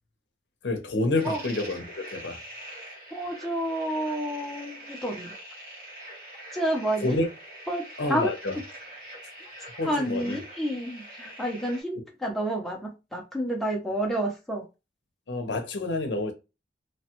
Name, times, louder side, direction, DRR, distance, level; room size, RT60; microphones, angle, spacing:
voice 1, 0.6-2.4 7.0-7.3 8.0-8.6 9.8-10.4 13.9-14.1 15.3-16.3, left 2 dB, 70° left, 0.7 m, -28 dB
sound 1, 1.1-11.8, right 1 dB, 50° right, 1.2 m, -44 dB
voice 2, 3.1-5.3 6.5-7.2 7.7-7.8 8.1-8.3 9.8-14.6, right 1 dB, ahead, 0.7 m, -29 dB
3.1 x 2.2 x 2.9 m
head